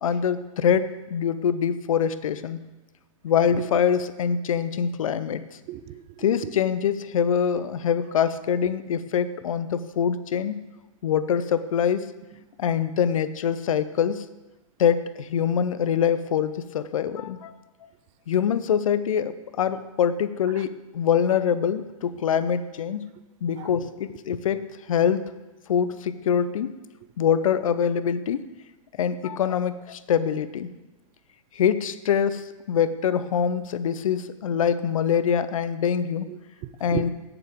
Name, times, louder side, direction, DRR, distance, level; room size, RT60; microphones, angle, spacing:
voice 1, 0.0-2.6 3.2-5.4 6.2-10.6 11.0-12.1 12.6-14.2 14.8-17.5 18.3-23.1 23.4-25.3 25.7-26.7 27.2-28.4 29.0-30.7 31.6-36.3 36.8-37.1, left 8 dB, 70° left, 14 dB, 0.7 m, -24 dB
voice 2, 5.7-6.5 20.6-20.7 22.1-22.2 23.6-23.7 36.3-37.1, right 15 dB, 35° right, 13 dB, 0.6 m, -35 dB
16.5 x 7.0 x 3.7 m, 1.1 s
hypercardioid pair, 110°, 18 cm